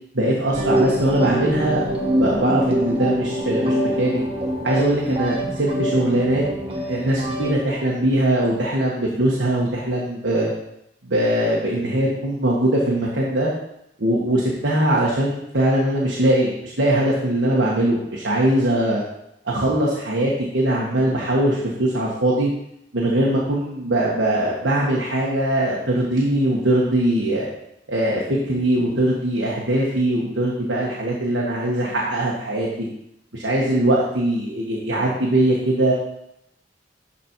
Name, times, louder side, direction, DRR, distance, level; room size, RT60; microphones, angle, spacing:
voice 1, 0.1-1.8 2.2-4.2 4.6-6.4 6.8-10.5 11.0-13.5 14.0-19.0 19.5-22.5 22.9-27.5 27.9-32.9 33.3-35.9, right 1 dB, 70° right, -4 dB, 1.6 m, -21 dB
sound 1, 0.5-7.5, equal, 30° right, 1.4 m, -24 dB
12.5 x 4.3 x 4.6 m, 0.80 s
head